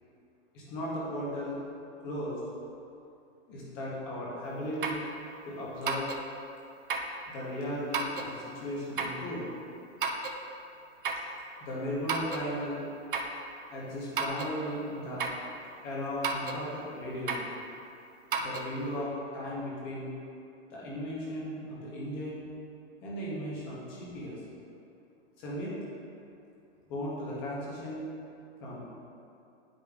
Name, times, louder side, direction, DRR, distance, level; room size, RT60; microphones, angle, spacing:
voice 1, 0.5-1.6 2.0-2.4 3.5-5.0 5.4-6.1 7.3-9.4 11.6-12.8 13.7-15.2 15.8-17.4 18.4-20.1 20.7-22.4 23.0-24.4 25.4-25.7 26.9-28.0 28.6-28.8, equal, 15° left, -6 dB, 0.7 m, -36 dB
sound 1, 4.8-5.1 5.9-6.2 6.9-7.2 7.9-8.3 9.0-9.2 10.0-10.4 11.0-11.3 12.1-12.5 13.1-13.4 14.2-14.5 15.2-15.5 16.2-16.6 17.3-17.5 18.3-18.7, right 4 dB, 50° right, 0.6 m, -32 dB
10.0 x 5.0 x 2.3 m, 2.7 s
hypercardioid pair, 180°, 34 cm